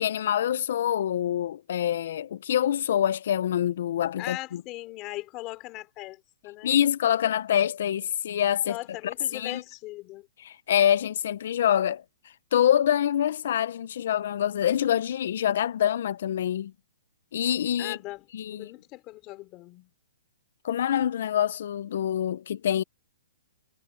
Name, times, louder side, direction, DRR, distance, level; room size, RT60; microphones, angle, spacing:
voice 1, 0.0-4.6 6.6-8.8 9.3-9.6 10.4-12.0 12.5-16.7 17.3-18.0 18.3-18.7 20.6-22.8, left 10 dB, 50° left, 0.4 m, -25 dB
voice 2, 4.2-6.8 8.6-10.3 17.8-19.9, left 19 dB, 20° left, 3.1 m, -39 dB
hypercardioid pair, 170°, 0 cm